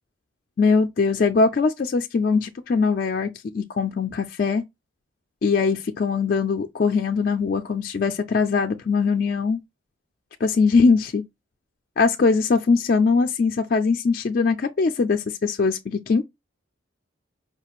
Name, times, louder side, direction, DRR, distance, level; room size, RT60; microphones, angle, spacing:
voice 1, 0.6-4.6 5.4-9.6 10.4-11.2 12.0-16.2, left 4 dB, 45° left, 0.3 m, -21 dB
4.8 x 2.4 x 2.9 m
head